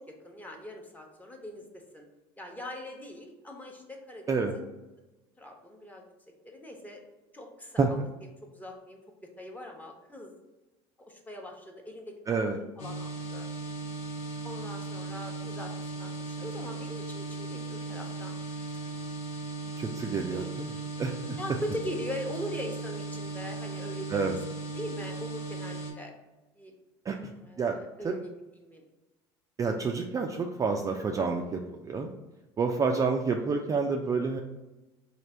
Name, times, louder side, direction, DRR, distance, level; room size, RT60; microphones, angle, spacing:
voice 1, 0.0-2.0 2.4-4.7 5.4-6.0 6.4-7.0 7.3-9.0 9.4-10.4 11.1-12.1 12.5-13.5 14.4-18.3 18.8-19.1 20.0-20.5 21.4-24.2 24.8-26.1 26.6-26.7 27.4-28.8 32.9-33.0, left 1 dB, 10° left, 1 dB, 0.9 m, -41 dB
voice 2, 12.3-12.6 19.8-21.1 24.1-24.3 27.1-27.2 27.6-27.8 28.0-28.2 29.6-32.1 32.6-34.4, right 4 dB, 25° right, 2 dB, 0.3 m, -29 dB
sound 1, 12.8-25.9, right 3 dB, 55° left, 1.1 m, -37 dB
3.2 x 2.4 x 4.2 m, 1.1 s
hypercardioid pair, 80°, 14 cm